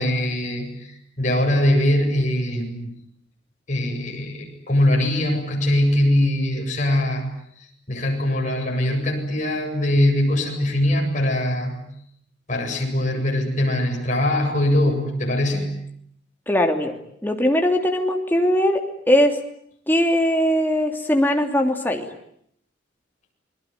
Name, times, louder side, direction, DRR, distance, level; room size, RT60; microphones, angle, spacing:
voice 1, 0.0-2.9 3.7-7.3 7.9-11.8 12.5-15.7, left 1 dB, 40° left, 0 dB, 7.9 m, -22 dB
voice 2, 16.5-16.9 17.2-18.8 19.1-19.4 19.9-22.1, equal, 10° left, 3 dB, 3.0 m, -20 dB
28.5 x 21.5 x 9.4 m, 0.71 s
head